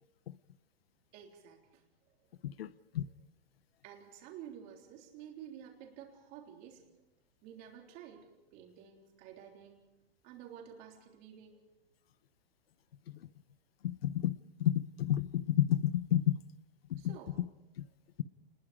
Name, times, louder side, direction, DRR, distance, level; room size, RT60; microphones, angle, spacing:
voice 1, 1.1-2.2 2.7-2.9 3.8-6.9 7.4-9.8 10.2-11.6 17.0-17.4, right 9 dB, 30° right, 3.6 m, -51 dB
voice 2, 2.4-3.1 13.8-14.3 14.6-16.4 16.9-17.0, left 11 dB, 75° left, 0.9 m, -30 dB
28.0 x 21.0 x 5.0 m
hypercardioid pair, 165°, 30 cm